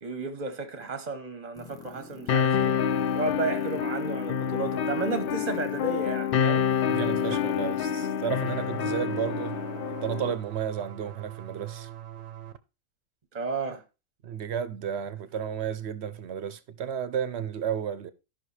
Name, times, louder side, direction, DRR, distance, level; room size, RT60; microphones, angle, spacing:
voice 1, 0.0-2.8 3.1-6.7 7.3-7.4 13.3-13.8, right 3 dB, 35° right, 0.9 m, -33 dB
sound 1, 1.6-10.2, left 3 dB, 5° left, 0.7 m, -48 dB
sound 2, 2.3-10.3, left 7 dB, 55° left, 0.7 m, -27 dB
voice 2, 6.9-9.6 10.0-11.9 14.2-18.1, right 8 dB, 60° right, 0.9 m, -32 dB
sound 3, 8.4-12.6, right 11 dB, 85° right, 1.1 m, -42 dB
14.0 x 5.6 x 3.2 m
omnidirectional pair, 1.3 m